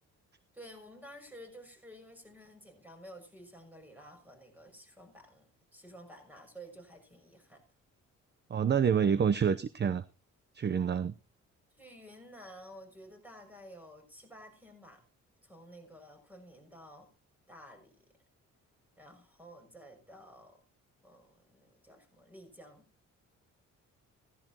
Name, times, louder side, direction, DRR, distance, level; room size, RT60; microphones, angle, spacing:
voice 1, 0.5-7.6 11.8-15.0 15.4-17.1 17.5-18.0 19.0-20.6 21.0-22.9, equal, 5° right, 6.3 m, -52 dB
voice 2, 8.5-10.0 10.5-11.1, right 7 dB, 35° right, 0.7 m, -27 dB
16.0 x 15.0 x 2.9 m
cardioid pair, 90°, 30 cm